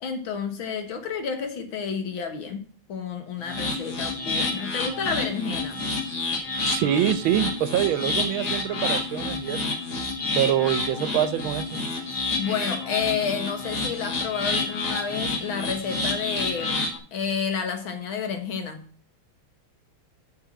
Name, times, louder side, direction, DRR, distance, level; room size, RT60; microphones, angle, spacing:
voice 1, 0.0-5.8 12.1-18.8, left 6 dB, 75° left, 2.2 m, -30 dB
sound 1, 3.4-17.0, left 3 dB, 50° left, 2.4 m, -29 dB
voice 2, 6.7-9.6 10.4-11.8, right 11 dB, 80° right, 1.5 m, -25 dB
8.4 x 6.2 x 7.6 m
omnidirectional pair, 2.2 m